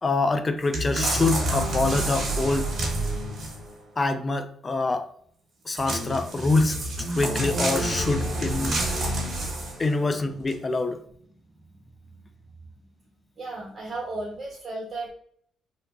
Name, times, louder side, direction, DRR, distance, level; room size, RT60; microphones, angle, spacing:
voice 1, 0.0-2.7 4.0-5.1 5.7-6.8 7.1-8.8 9.8-11.0, left 3 dB, 30° left, 9 dB, 0.3 m, -25 dB
sound 1, 0.7-3.7 5.7-9.9 10.5-10.6, right 1 dB, 55° right, 1.1 m, -28 dB
voice 2, 13.4-15.1, right 2 dB, 35° right, -4 dB, 0.9 m, -35 dB
2.8 x 2.2 x 2.4 m, 0.62 s
cardioid pair, 90°, 0 cm